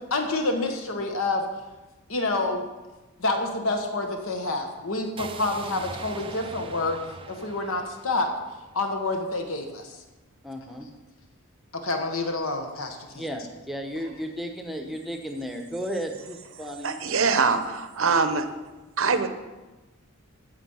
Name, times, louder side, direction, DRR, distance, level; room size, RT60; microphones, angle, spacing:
voice 1, 0.1-1.4 2.1-2.7 3.2-7.0 7.3-8.3 8.7-10.0 11.7-13.2, left 2 dB, 70° left, 5 dB, 1.3 m, -28 dB
sound 1, 5.2-9.2, right 4 dB, 25° right, 0.4 m, -42 dB
voice 2, 10.4-10.9 13.1-17.0, equal, ahead, 3 dB, 0.9 m, -34 dB
voice 3, 16.8-18.5 19.0-19.3, right 4 dB, 65° right, 10 dB, 0.7 m, -23 dB
15.0 x 5.1 x 5.6 m, 1.2 s
head